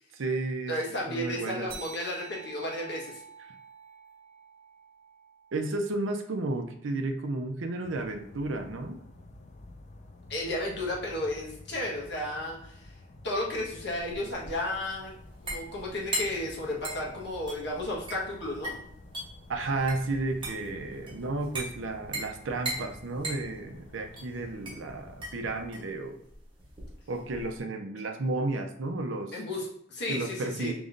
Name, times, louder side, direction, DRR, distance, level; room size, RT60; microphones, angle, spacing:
voice 1, 0.1-0.8 1.1-1.7 5.5-9.0 19.5-26.2 27.1-29.3 30.1-30.7, right 2 dB, 90° right, 5 dB, 0.6 m, -32 dB
voice 2, 0.7-3.2 10.3-12.9 13.2-15.1 15.4-18.8 29.3-30.7, left 1 dB, 60° left, -3 dB, 1.3 m, -33 dB
sound 1, 1.7-6.6, right 5 dB, 50° right, 0.8 m, -49 dB
sound 2, 7.8-25.7, left 2 dB, 35° left, 0.4 m, -50 dB
sound 3, 13.6-27.6, right 1 dB, 25° right, 1.1 m, -39 dB
5.0 x 3.0 x 2.5 m, 0.71 s
head